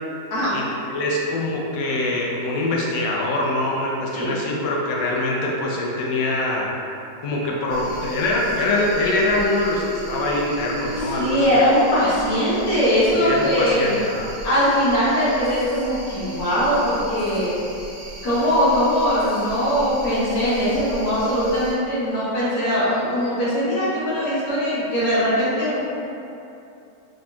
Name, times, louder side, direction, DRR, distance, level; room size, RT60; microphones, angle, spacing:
voice 1, 0.9-6.7 7.2-11.7 13.2-14.3, left 2 dB, 85° left, -3 dB, 1.2 m, -24 dB
sound 1, 7.7-21.7, right 2 dB, 60° right, 0.5 m, -39 dB
sound 2, 9.6-14.3, right 1 dB, 90° right, 1.4 m, -35 dB
voice 2, 11.2-14.0 14.4-17.5 18.2-25.8, equal, 60° left, -10 dB, 1.6 m, -21 dB
5.1 x 2.7 x 2.3 m, 2.7 s
omnidirectional pair, 1.8 m